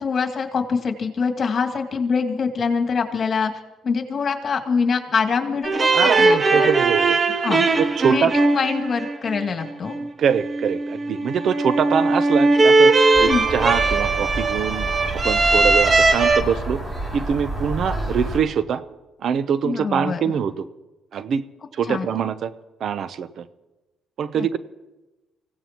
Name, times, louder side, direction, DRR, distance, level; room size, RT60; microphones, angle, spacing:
voice 1, 0.0-3.5 3.8-6.7 7.3-7.7 8.1-9.9 13.2-13.4 19.6-20.3 21.9-22.1 24.3-24.5, left 5 dB, 45° left, 3 dB, 2.4 m, -24 dB
sound 1, 5.6-16.4, right 3 dB, 35° right, 1.4 m, -19 dB
voice 2, 5.9-7.1 7.8-8.3 10.2-12.9 13.2-14.9 15.2-16.8 17.1-18.8 19.2-20.7 21.1-21.4 21.7-22.5 22.8-23.5 24.2-24.6, right 7 dB, 65° right, 14 dB, 0.7 m, -23 dB
sound 2, 13.1-18.4, right 1 dB, 20° right, 5.5 m, -29 dB
25.5 x 16.5 x 3.0 m, 1.1 s
supercardioid pair, 75°, 0 cm